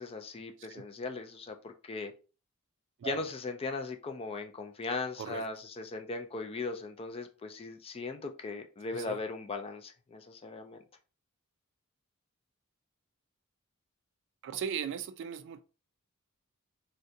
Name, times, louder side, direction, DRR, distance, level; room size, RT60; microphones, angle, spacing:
voice 1, 0.0-2.1 3.0-10.8, left 3 dB, 25° left, 0.3 m, -38 dB
voice 2, 14.4-15.6, right 7 dB, 55° right, 0.3 m, -38 dB
3.6 x 2.2 x 2.6 m
head